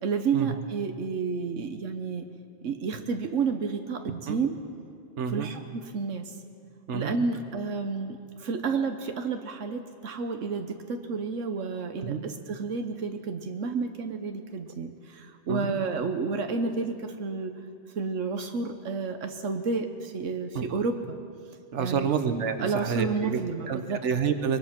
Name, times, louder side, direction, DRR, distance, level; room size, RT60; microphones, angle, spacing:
voice 1, 0.0-2.3 2.6-4.6 5.3-6.3 6.9-17.6 18.0-21.2 21.8-22.1 22.6-24.0, right 4 dB, 90° right, 6 dB, 1.4 m, -30 dB
voice 2, 5.2-5.5 6.9-7.1 12.0-12.2 15.5-15.7 20.5-20.6 21.7-24.6, right 6 dB, 70° right, 8 dB, 1.5 m, -28 dB
23.5 x 22.0 x 6.0 m, 2.3 s
omnidirectional pair, 1.2 m